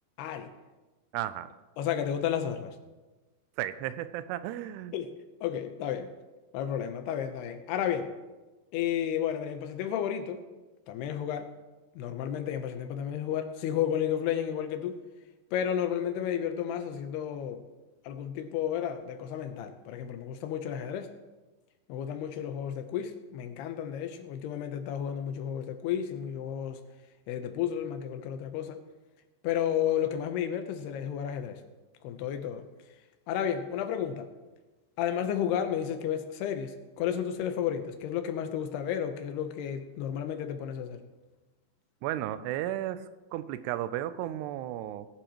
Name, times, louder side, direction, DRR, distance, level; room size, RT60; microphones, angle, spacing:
voice 1, 0.2-0.5 1.8-2.8 4.9-5.1 5.4-6.1 6.5-8.1 8.7-10.4 10.9-11.5 12.0-15.0 15.5-17.6 18.0-21.1 21.9-26.8 27.3-28.8 29.4-31.6 32.0-32.7 33.3-34.3 35.0-41.0, left 9 dB, 85° left, 7 dB, 2.8 m, -32 dB
voice 2, 1.1-1.5 3.6-4.9 42.0-45.1, right 13 dB, 85° right, 14 dB, 2.6 m, -34 dB
20.0 x 11.5 x 3.0 m, 1.2 s
omnidirectional pair, 4.8 m